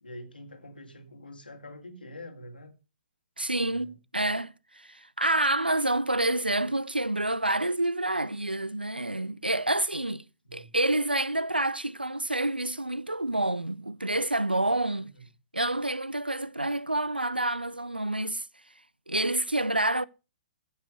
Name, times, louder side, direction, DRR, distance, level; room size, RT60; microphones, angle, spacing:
voice 1, 0.0-2.7 3.6-4.0 10.4-10.7 15.0-15.3, left 1 dB, 75° left, 2.5 m, -46 dB
voice 2, 3.4-10.3 10.5-15.1 15.5-18.5 19.1-20.1, right 1 dB, 85° right, 0.5 m, -28 dB
14.5 x 5.6 x 6.4 m
figure-of-eight pair, 120°, 5 cm